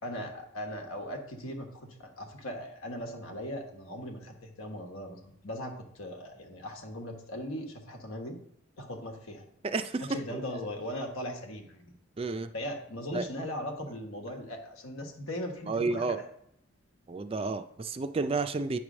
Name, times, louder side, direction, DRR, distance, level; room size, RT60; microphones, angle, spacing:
voice 1, 0.0-8.4 8.8-9.4 10.0-11.9 12.5-16.2, equal, 85° left, 3 dB, 1.4 m, -39 dB
voice 2, 9.6-10.6 12.2-12.5 13.1-13.3 15.7-16.2 17.1-18.8, right 3 dB, 25° right, 10 dB, 0.3 m, -31 dB
8.9 x 3.2 x 6.1 m, 0.73 s
head